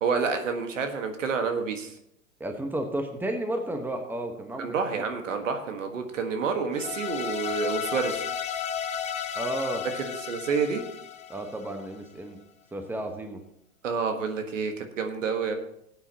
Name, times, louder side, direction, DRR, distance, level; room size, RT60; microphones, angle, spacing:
voice 1, 0.0-1.9 4.6-8.2 10.3-10.8 13.8-15.5, right 5 dB, 70° right, 5 dB, 1.7 m, -28 dB
voice 2, 2.4-5.0 9.3-9.8 11.3-12.4 12.7-13.4, right 1 dB, 5° right, 5 dB, 1.3 m, -32 dB
sound 1, 6.7-11.9, left 8 dB, 15° left, 0.7 m, -33 dB
18.0 x 8.8 x 3.0 m, 0.77 s
figure-of-eight pair, 95°, 39 cm